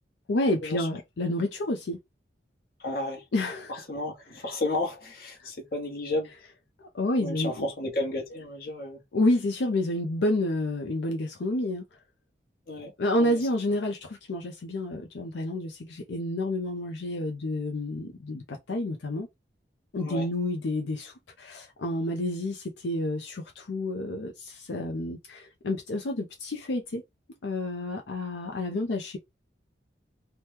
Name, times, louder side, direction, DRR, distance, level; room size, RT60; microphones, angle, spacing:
voice 1, 0.3-2.0 3.3-3.7 5.4-5.5 6.8-7.7 9.1-11.8 13.0-19.3 19.9-27.0 27.4-29.2, left 1 dB, 80° left, 0.5 m, -29 dB
voice 2, 2.8-3.2 3.7-6.3 7.2-9.0 12.7-12.9 13.2-13.5 20.0-20.3, left 2 dB, 50° left, 1.0 m, -32 dB
2.9 x 2.2 x 3.3 m
head